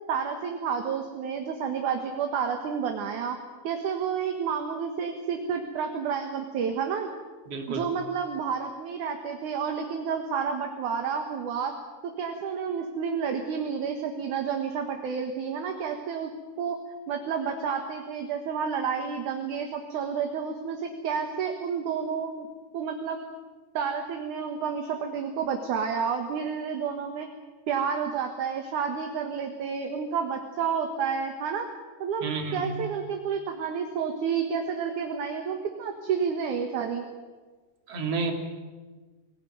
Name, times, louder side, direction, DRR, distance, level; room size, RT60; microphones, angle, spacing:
voice 1, 0.1-3.4 3.6-7.1 7.7-11.7 12.2-16.3 16.6-16.8 17.1-22.5 22.7-23.2 23.7-27.3 27.7-31.7 32.0-37.0, right 6 dB, 60° right, 4 dB, 2.7 m, -30 dB
voice 2, 7.5-7.8 32.2-32.8 37.9-38.3, right 4 dB, 40° right, 3 dB, 3.5 m, -30 dB
23.0 x 18.5 x 9.4 m, 1.3 s
omnidirectional pair, 4.7 m